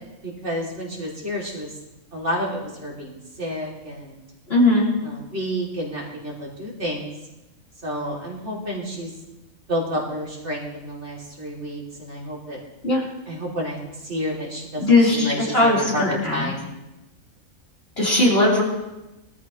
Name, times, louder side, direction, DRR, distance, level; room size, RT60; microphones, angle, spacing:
voice 1, 0.2-1.7 2.1-4.2 5.0-7.1 7.8-9.1 9.7-12.6 13.3-16.7, equal, 55° right, -4 dB, 3.2 m, -30 dB
voice 2, 4.5-4.9 12.8-13.0 14.8-16.5 18.0-18.6, left 2 dB, 45° left, -5 dB, 4.1 m, -18 dB
21.5 x 13.5 x 3.1 m, 0.98 s
omnidirectional pair, 1.4 m